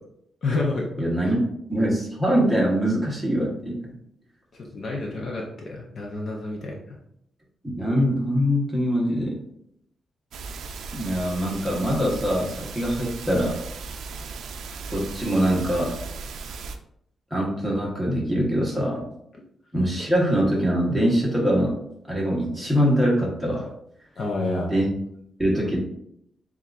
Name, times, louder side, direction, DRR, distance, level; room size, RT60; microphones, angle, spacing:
voice 1, 0.4-0.9 4.6-7.0 24.2-24.7, left 2 dB, 45° left, -1 dB, 0.7 m, -29 dB
voice 2, 1.0-1.4 1.7-4.0 7.6-9.4 10.9-13.6 14.9-16.0 17.3-19.0 19.7-21.7 22.1-23.7 24.7-24.9 25.4-25.8, equal, 5° right, -4 dB, 1.1 m, -23 dB
sound 1, 10.3-16.8, right 4 dB, 75° right, 0.4 m, -37 dB
7.1 x 2.4 x 2.5 m, 0.74 s
wide cardioid pair, 165°, 0 cm